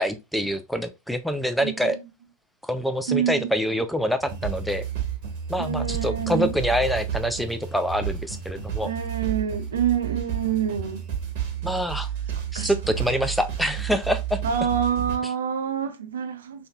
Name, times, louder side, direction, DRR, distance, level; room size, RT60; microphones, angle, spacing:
voice 1, 0.0-2.0 2.6-4.8 5.5-8.9 11.6-12.1 12.5-14.4, equal, ahead, 0.3 m, -26 dB
voice 2, 1.6-2.0 3.1-3.5 5.6-6.6 8.8-11.1 12.5-12.7 13.2-13.3 14.4-16.7, right 8 dB, 65° right, 0.4 m, -27 dB
sound 1, 4.2-15.2, right 9 dB, 50° right, 1.2 m, -31 dB
3.4 x 2.6 x 2.3 m
figure-of-eight pair, 90°, 0 cm